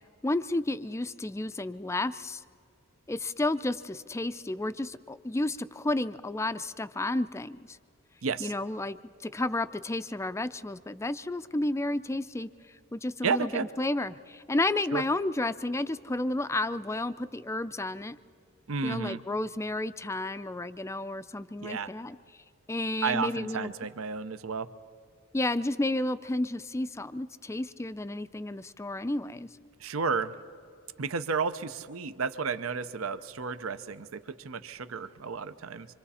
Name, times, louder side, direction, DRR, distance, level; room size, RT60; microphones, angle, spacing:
voice 1, 0.2-2.4 3.1-7.8 8.4-12.5 12.9-18.2 18.8-22.2 22.7-23.7 25.3-29.5, left 2 dB, 15° left, 13 dB, 0.4 m, -31 dB
voice 2, 8.2-8.5 13.2-13.7 14.9-15.0 18.7-19.2 21.6-21.9 23.0-24.7 29.8-30.3 31.0-35.9, right 5 dB, 75° right, 12 dB, 0.7 m, -32 dB
26.0 x 25.0 x 4.3 m, 2.4 s
head